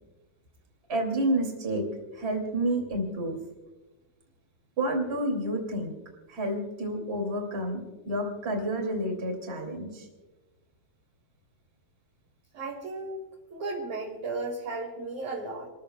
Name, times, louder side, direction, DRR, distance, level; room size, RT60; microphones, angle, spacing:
voice 1, 0.9-1.9 2.1-3.4 4.8-5.9 6.3-10.1, right 1 dB, 20° right, 2 dB, 1.8 m, -29 dB
voice 2, 12.5-15.7, right 3 dB, 50° right, -2 dB, 2.8 m, -35 dB
28.5 x 14.0 x 2.3 m, 1.2 s
omnidirectional pair, 4.8 m